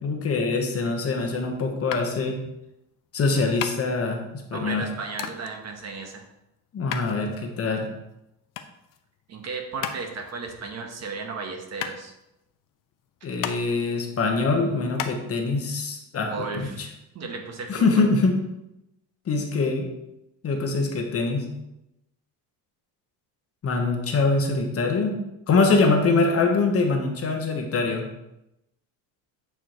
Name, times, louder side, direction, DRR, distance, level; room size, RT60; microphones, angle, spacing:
voice 1, 0.0-2.4 3.1-4.2 4.5-4.8 6.7-7.9 13.2-16.9 17.7-18.3 19.3-19.9 20.4-21.4 23.6-25.2 25.5-28.0, left 3 dB, 35° left, 3 dB, 1.1 m, -23 dB
sound 1, 1.9-15.2, left 9 dB, 55° left, 0.7 m, -37 dB
voice 2, 4.5-6.2 9.3-12.1 16.2-16.8 17.1-18.0, right 4 dB, 40° right, 3 dB, 1.1 m, -34 dB
8.7 x 4.8 x 3.0 m, 0.88 s
cardioid pair, 135°, 39 cm